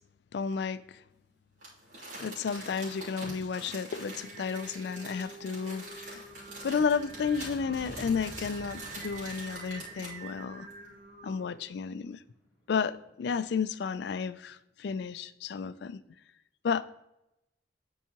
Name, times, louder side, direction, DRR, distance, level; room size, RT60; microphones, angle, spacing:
voice 1, 0.3-0.8 2.2-6.2 6.6-10.7 11.2-12.2 12.7-16.0 16.6-16.8, left 6 dB, 60° left, 0.3 m, -32 dB
Crumpling crinkling, 1.6-10.3 10.7-10.8, right 1 dB, 80° right, 2.7 m, -45 dB
sound 1, 2.1-2.2 2.6-2.7 2.9-14.3, equal, ahead, 2.3 m, -52 dB
Singing, 4.1-11.7, right 3 dB, 45° right, 1.0 m, -48 dB
9.9 x 4.7 x 2.9 m
head